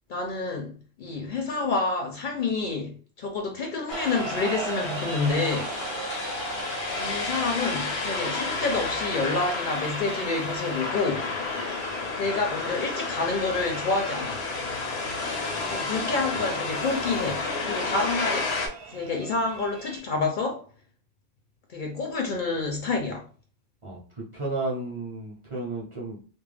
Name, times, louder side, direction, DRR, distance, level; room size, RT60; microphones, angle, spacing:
voice 1, 0.1-5.7 6.9-11.3 12.2-14.4 15.7-18.5 18.9-20.6 21.7-23.3, left 3 dB, 60° left, 0.6 m, -28 dB
sound 1, 3.9-18.7, left 3 dB, 85° left, 0.9 m, -31 dB
sound 2, 3.9-20.0, right 4 dB, 70° right, 0.7 m, -39 dB
voice 2, 23.8-26.2, right 2 dB, 35° right, 0.6 m, -33 dB
2.3 x 2.1 x 3.2 m
omnidirectional pair, 1.1 m